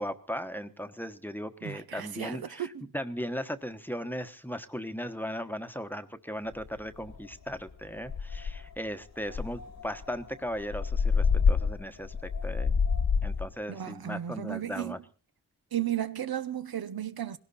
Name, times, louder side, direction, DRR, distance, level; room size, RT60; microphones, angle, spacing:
voice 1, 0.0-12.8 13.2-15.0, equal, 5° left, 1.1 m, -37 dB
voice 2, 1.6-2.9 13.7-14.9 15.7-17.4, right 11 dB, 75° right, 0.9 m, -34 dB
sound 1, 6.6-6.7 7.1-7.4 7.7-7.8 8.1-8.8 9.3-13.5, left 5 dB, 65° left, 1.6 m, -27 dB
20.0 x 17.0 x 4.2 m
wide cardioid pair, 95°, 36 cm